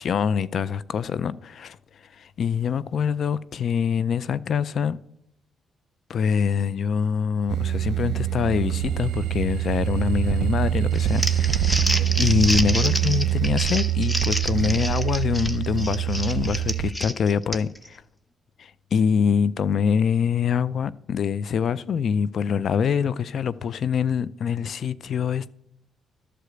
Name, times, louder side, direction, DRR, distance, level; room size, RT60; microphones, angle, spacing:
voice 1, 0.0-1.8 2.1-5.0 6.1-11.9 12.2-18.0 18.6-25.5, left 7 dB, 60° left, 0.4 m, -25 dB
sound 1, 7.5-16.9, right 11 dB, 75° right, 0.7 m, -25 dB
Crumpling crinkling, 11.0-17.9, left 1 dB, 10° left, 0.9 m, -29 dB
12.5 x 5.0 x 7.9 m
cardioid pair, 90°, 0 cm